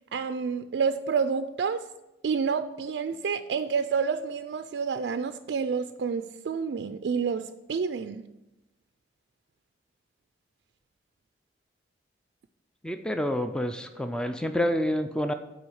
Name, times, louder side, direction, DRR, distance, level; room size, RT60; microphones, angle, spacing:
voice 1, 0.1-1.8 2.2-8.2, right 5 dB, 85° right, 9 dB, 0.4 m, -29 dB
voice 2, 12.8-15.3, equal, 5° left, 7 dB, 0.4 m, -28 dB
7.9 x 4.9 x 7.0 m, 0.98 s
head